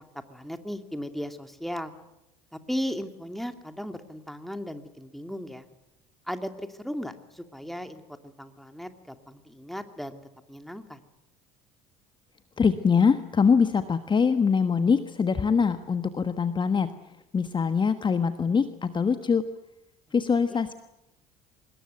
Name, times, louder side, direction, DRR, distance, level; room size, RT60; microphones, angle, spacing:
voice 1, 0.3-1.9 2.5-5.6 6.3-10.2 10.5-11.0 20.5-20.6, equal, ahead, 7 dB, 2.6 m, -36 dB
voice 2, 12.6-16.9 17.3-19.4 20.1-20.7, left 6 dB, 25° left, 10 dB, 1.4 m, -23 dB
25.5 x 20.5 x 9.3 m, 0.90 s
figure-of-eight pair, 60°, 19 cm